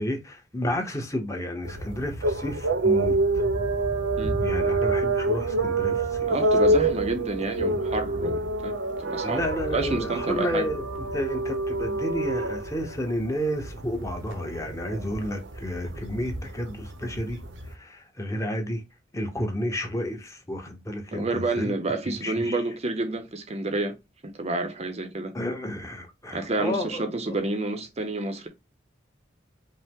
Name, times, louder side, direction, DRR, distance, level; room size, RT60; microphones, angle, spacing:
voice 1, 0.0-3.4 4.4-6.3 6.7-6.8 7.6-7.9 9.2-17.4 17.7-18.8 19.1-21.7 22.1-22.6 25.3-27.4, equal, 15° left, 0.8 m, -31 dB
sound 1, 1.6-17.7, right 2 dB, 75° right, 0.8 m, -27 dB
voice 2, 6.3-9.4 9.7-10.7 21.1-24.0 24.2-25.3 26.3-28.5, right 2 dB, 35° right, 0.6 m, -29 dB
5.3 x 2.1 x 3.5 m
head